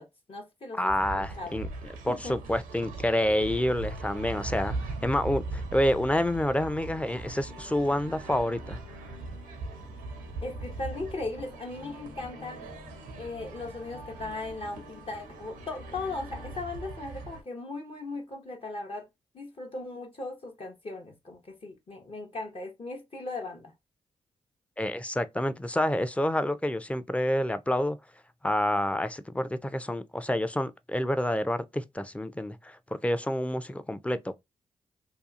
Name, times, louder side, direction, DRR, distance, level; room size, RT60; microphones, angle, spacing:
voice 1, 0.0-1.6 2.1-2.4 10.4-12.7 13.2-19.1 19.3-23.7, left 2 dB, 45° left, 0.8 m, -38 dB
voice 2, 0.7-1.7 2.0-4.8 5.0-8.8 24.8-28.0 28.4-32.8 33.0-34.4, left 1 dB, 10° left, 0.4 m, -28 dB
sound 1, 0.9-17.4, right 3 dB, 90° right, 0.6 m, -40 dB
sound 2, 4.8-16.6, left 3 dB, 85° left, 0.8 m, -51 dB
2.7 x 2.4 x 2.4 m
supercardioid pair, 40°, 14 cm